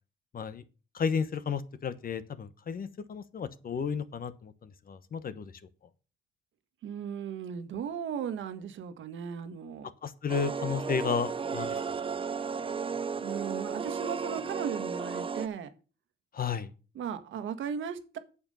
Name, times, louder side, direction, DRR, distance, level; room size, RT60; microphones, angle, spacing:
voice 1, 0.9-5.5 10.0-11.8 16.3-16.7, left 6 dB, 45° left, 1.1 m, -33 dB
voice 2, 6.8-9.9 13.2-15.7 16.9-18.2, right 7 dB, 75° right, 1.5 m, -36 dB
sound 1, 10.3-15.5, right 5 dB, 25° right, 0.7 m, -34 dB
8.7 x 7.1 x 5.5 m
cardioid pair, 90°, 20 cm